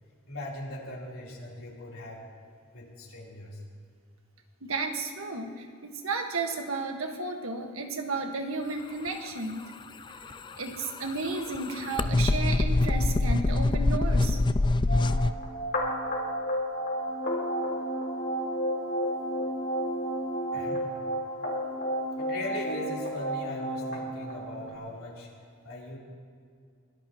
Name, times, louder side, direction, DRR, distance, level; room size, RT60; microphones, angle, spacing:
voice 1, 0.3-2.2 2.7-3.6 20.5-20.9 22.2-25.3 25.6-26.0, left 1 dB, 75° left, -4 dB, 3.8 m, -39 dB
voice 2, 4.6-9.7 10.6-14.4, right 3 dB, 80° right, 3 dB, 1.7 m, -33 dB
sound 1, 10.1-15.3, left 2 dB, 20° left, 0.3 m, -25 dB
sound 2, 14.9-24.7, equal, 55° left, 3.5 m, -32 dB
23.5 x 17.0 x 3.1 m, 2.3 s
head